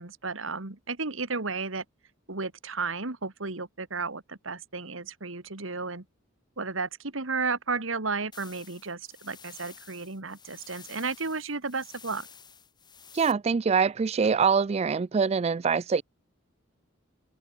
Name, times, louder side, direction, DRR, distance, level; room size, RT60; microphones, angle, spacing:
voice 1, 0.0-1.8 2.3-6.0 6.6-12.3, right 4 dB, 75° right, 2.2 m, -33 dB
sound 1, 8.3-13.3, left 7 dB, 20° left, 2.7 m, -51 dB
voice 2, 13.1-16.0, right 5 dB, 30° right, 0.3 m, -24 dB
head